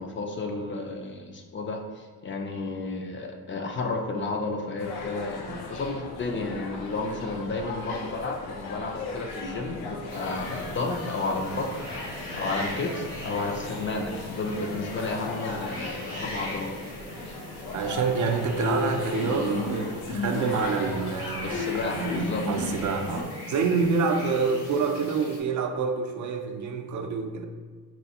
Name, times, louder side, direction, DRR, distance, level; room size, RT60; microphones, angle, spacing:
voice 1, 0.0-11.9 12.3-16.7 17.3-17.4 21.4-22.7, left 3 dB, 35° left, 3 dB, 0.4 m, -32 dB
sound 1, 4.8-23.2, left 3 dB, 85° left, 0.6 m, -36 dB
sound 2, 10.1-25.4, left 1 dB, 70° left, 1.1 m, -39 dB
voice 2, 17.7-27.4, right 5 dB, 55° right, 5 dB, 0.4 m, -27 dB
4.2 x 2.3 x 2.8 m, 1.5 s
cardioid pair, 100°, 36 cm